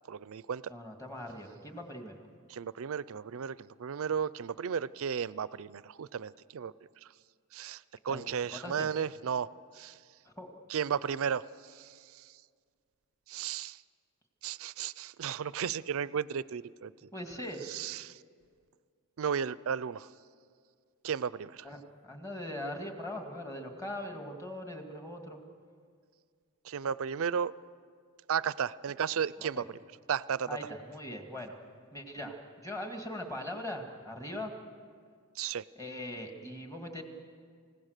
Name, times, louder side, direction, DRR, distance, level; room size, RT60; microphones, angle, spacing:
voice 1, 0.1-0.6 2.5-6.7 7.5-9.5 9.7-9.9 10.7-11.5 11.8-12.2 13.3-13.8 14.4-16.9 17.7-18.2 19.2-20.1 21.0-21.6 26.6-27.5 28.3-29.6 30.1-30.5 35.4-35.6, right 7 dB, 65° right, 19 dB, 0.4 m, -34 dB
voice 2, 0.7-2.2 8.1-8.9 10.4-10.5 17.1-17.6 21.6-25.4 29.4-29.7 30.5-31.6 31.9-34.5 35.8-37.0, left 1 dB, 15° left, 3 dB, 2.1 m, -41 dB
28.5 x 16.5 x 6.6 m, 2.1 s
head